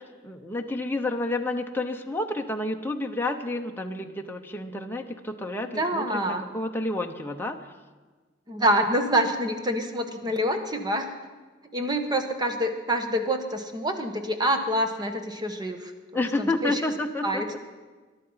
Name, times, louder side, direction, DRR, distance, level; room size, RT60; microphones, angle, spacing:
voice 1, 0.2-7.6 16.1-17.6, left 2 dB, 10° left, 3 dB, 0.8 m, -30 dB
voice 2, 5.6-6.4 8.5-11.1 11.7-16.8 17.2-17.5, right 1 dB, 20° right, 6 dB, 1.3 m, -26 dB
22.0 x 11.5 x 5.7 m, 1.4 s
head